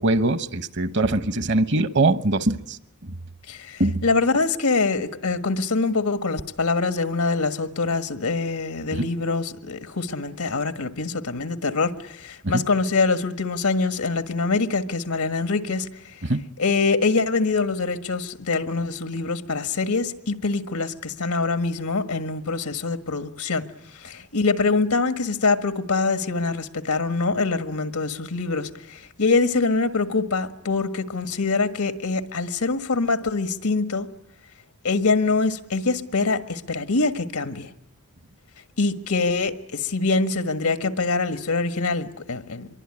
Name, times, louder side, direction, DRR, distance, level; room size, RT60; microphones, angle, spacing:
voice 1, 0.0-2.8 3.8-4.0 8.9-9.1 12.5-12.6 16.2-16.4, right 2 dB, 55° right, 1.1 m, -22 dB
voice 2, 3.5-15.9 16.6-23.6 24.0-34.1 34.8-37.7 38.8-42.7, left 3 dB, 90° left, 1.6 m, -24 dB
25.5 x 23.0 x 10.0 m
head